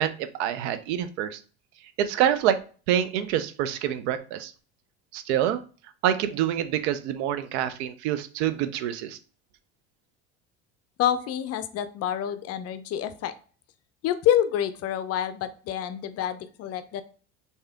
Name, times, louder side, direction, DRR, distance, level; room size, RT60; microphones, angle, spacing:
voice 1, 0.0-1.4 2.0-2.6 2.9-4.5 5.1-5.6 6.0-9.2, right 10 dB, 70° right, 12 dB, 0.5 m, -26 dB
voice 2, 11.0-13.3 14.0-17.0, left 10 dB, 45° left, 12 dB, 0.5 m, -27 dB
3.3 x 2.8 x 3.4 m, 0.39 s
hypercardioid pair, 80°, 35 cm